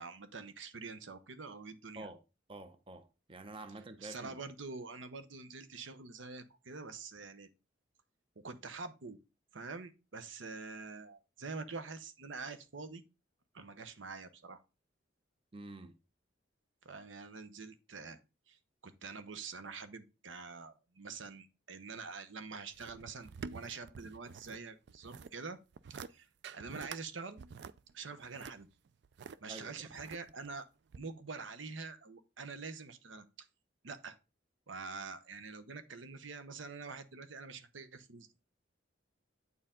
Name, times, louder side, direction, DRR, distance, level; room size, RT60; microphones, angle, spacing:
voice 1, 0.0-2.1 4.0-7.5 8.4-9.2 9.5-13.0 13.5-14.6 16.8-18.2 18.5-25.6 25.9-26.3 26.5-27.4 27.9-28.7 29.4-30.6 31.0-33.5 33.8-34.2 34.7-38.3, right 4 dB, 80° right, 0.9 m, -46 dB
voice 2, 2.5-4.4 15.5-16.0 29.5-29.7, right 2 dB, 30° right, 0.6 m, -48 dB
sound 1, 22.7-24.6 24.9-25.3 25.7-26.1 26.4-27.0 27.4-29.4 29.9-30.5 30.9-31.0, right 5 dB, 60° right, 0.4 m, -47 dB
8.4 x 4.6 x 3.7 m
head